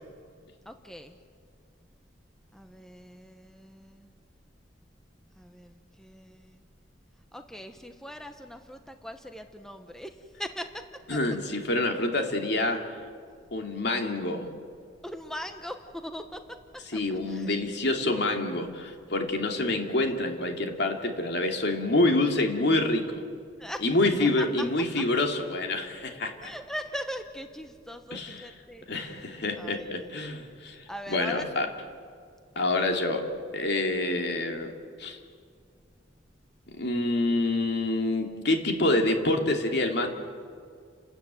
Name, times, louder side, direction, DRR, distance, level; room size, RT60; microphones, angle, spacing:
voice 1, 0.6-1.2 2.5-4.1 5.4-6.6 7.3-10.8 11.1-11.2 15.0-16.4 16.9-17.0 17.3-17.5 23.6-23.8 24.2-24.4 26.4-29.2 29.5-30.1 30.6-31.7, equal, 5° left, 6 dB, 1.0 m, -40 dB
voice 2, 11.1-12.8 13.5-14.5 16.9-23.2 23.8-26.5 28.1-28.5 28.9-30.8 31.1-31.7 32.6-33.2 33.5-34.7 35.0-35.2 36.8-40.1, left 2 dB, 65° left, 3 dB, 2.7 m, -27 dB
30.0 x 13.5 x 9.2 m, 2.2 s
head